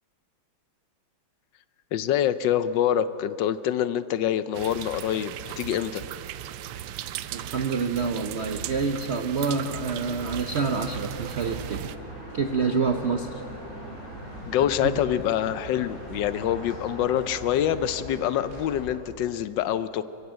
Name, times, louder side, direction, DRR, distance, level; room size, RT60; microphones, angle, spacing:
voice 1, 1.9-6.0 14.5-20.0, left 10 dB, 75° left, 14 dB, 1.2 m, -26 dB
sound 1, 4.5-12.0, right 11 dB, 75° right, 1.3 m, -37 dB
voice 2, 7.3-11.9 12.3-13.4 14.8-14.9, right 4 dB, 60° right, 5 dB, 0.7 m, -27 dB
sound 2, 9.2-18.9, equal, 30° right, 6.2 m, -41 dB
23.5 x 15.0 x 8.0 m, 3.0 s
omnidirectional pair, 2.1 m